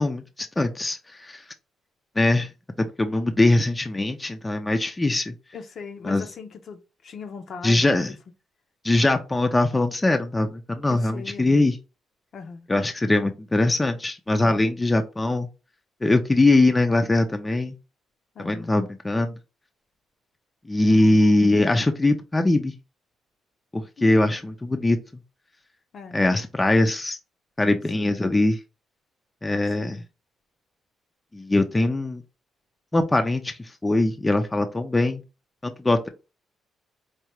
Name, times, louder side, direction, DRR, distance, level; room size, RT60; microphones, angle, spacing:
voice 1, 0.0-1.4 2.2-2.5 2.8-5.3 6.0-6.2 7.6-8.1 8.8-11.7 12.7-15.5 16.0-17.7 18.5-19.4 20.7-22.7 23.7-25.0 26.1-27.2 27.6-28.6 29.4-30.0 31.3-32.2 32.9-35.2 35.6-36.1, left 2 dB, 15° left, 0.5 m, -22 dB
voice 2, 5.5-8.0 10.9-11.7 12.3-12.7 14.4-14.7 18.3-18.8 20.9-21.2 24.0-24.4 25.9-26.3 28.0-28.1 29.8-30.1, left 5 dB, 55° left, 0.7 m, -40 dB
4.7 x 2.4 x 3.0 m
cardioid pair, 90°, 0 cm